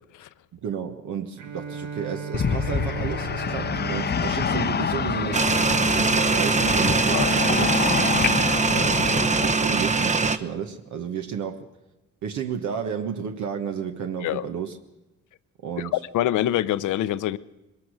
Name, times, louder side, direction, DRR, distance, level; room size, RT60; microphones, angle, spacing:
voice 1, 0.5-5.6 5.9-7.9 8.7-11.7 12.2-14.8 15.6-16.0, right 7 dB, 70° right, 1.4 m, -32 dB
Bowed string instrument, 1.4-6.6, right 6 dB, 90° right, 1.5 m, -37 dB
sound 1, 2.3-9.6, left 7 dB, 35° left, 0.7 m, -27 dB
sound 2, 5.3-10.4, right 4 dB, 25° right, 0.9 m, -22 dB
voice 2, 7.1-7.5 14.2-14.5 15.8-17.4, left 13 dB, 80° left, 0.8 m, -25 dB
22.5 x 20.0 x 6.5 m
cardioid pair, 90°, 30 cm